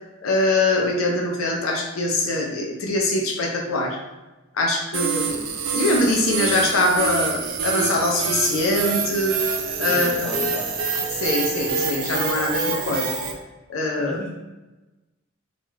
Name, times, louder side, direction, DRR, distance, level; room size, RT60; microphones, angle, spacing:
voice 1, 0.2-4.0 4.5-5.4 5.7-9.4 9.8-10.3 11.2-13.1 13.7-14.2, left 2 dB, 90° left, 0 dB, 0.6 m, -23 dB
sound 1, 4.9-13.3, right 5 dB, 80° right, 0.4 m, -26 dB
voice 2, 9.9-10.7 14.0-14.4, equal, 5° left, -2 dB, 0.4 m, -35 dB
2.5 x 2.2 x 3.2 m, 1.1 s
head